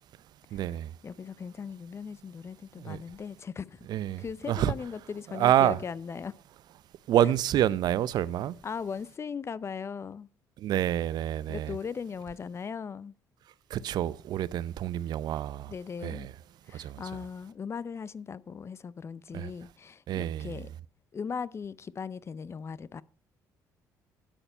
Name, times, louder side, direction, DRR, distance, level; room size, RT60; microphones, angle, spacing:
voice 1, 0.5-0.9 2.8-3.0 3.9-4.7 5.3-5.8 7.1-8.5 10.6-11.8 13.7-15.7 16.0-16.3 16.8-17.0 19.3-19.5 20.1-20.6, right 11 dB, 65° right, 0.5 m, -27 dB
voice 2, 1.0-3.9 4.2-6.3 8.6-10.3 11.5-13.1 15.7-16.3 16.7-20.7 21.1-23.0, left 6 dB, 35° left, 0.5 m, -38 dB
9.1 x 8.9 x 5.4 m
cardioid pair, 85°, 7 cm